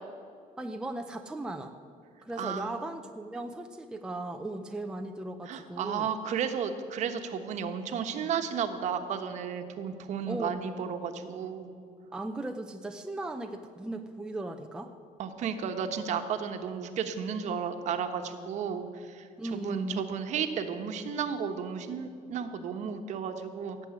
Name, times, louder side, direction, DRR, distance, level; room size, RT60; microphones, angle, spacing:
voice 1, 0.6-1.7 2.2-6.1 10.3-10.6 12.1-14.9 19.4-20.0, right 1 dB, 5° right, 5 dB, 0.6 m, -37 dB
voice 2, 2.4-2.7 5.5-11.7 15.2-23.9, right 7 dB, 55° right, 7 dB, 1.2 m, -33 dB
17.5 x 7.7 x 9.6 m, 2.3 s
cardioid pair, 175°, 15 cm